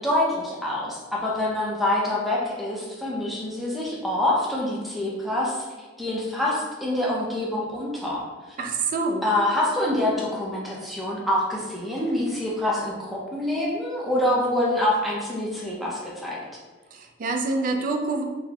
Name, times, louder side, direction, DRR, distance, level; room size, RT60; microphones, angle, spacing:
voice 1, 0.0-5.6 6.0-8.2 9.2-16.4, left 1 dB, ahead, -5 dB, 0.6 m, -26 dB
voice 2, 8.6-9.2 16.9-18.2, right 3 dB, 45° right, 4 dB, 0.3 m, -26 dB
3.9 x 2.1 x 2.8 m, 1.3 s
head